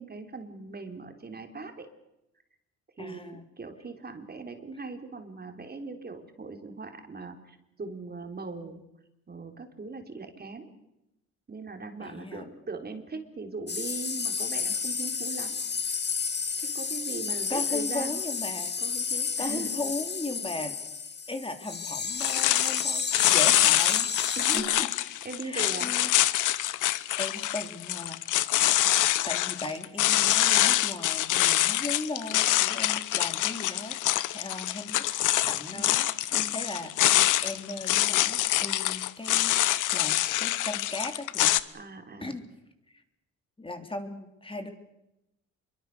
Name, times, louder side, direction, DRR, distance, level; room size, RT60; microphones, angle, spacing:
voice 1, 0.0-1.9 3.0-8.9 9.3-10.7 11.5-16.1 16.6-18.2 18.8-19.8 24.4-24.7 25.0-25.9 35.7-35.9 36.3-36.6 41.7-42.4, right 3 dB, 30° right, 6 dB, 3.6 m, -40 dB
voice 2, 3.0-3.4 12.0-12.5 17.5-18.8 19.1-20.8 21.3-24.9 25.4-26.1 27.2-28.5 29.3-35.1 35.5-36.9 37.4-41.6 42.2-42.4 42.9-43.0 43.6-44.7, left 2 dB, 15° left, 6 dB, 3.3 m, -37 dB
sound 1, 13.7-24.6, left 5 dB, 35° left, 2.4 m, -31 dB
sound 2, 22.2-41.6, left 15 dB, 85° left, 1.1 m, -25 dB
26.5 x 23.5 x 6.8 m, 0.89 s
cardioid pair, 90°, 30 cm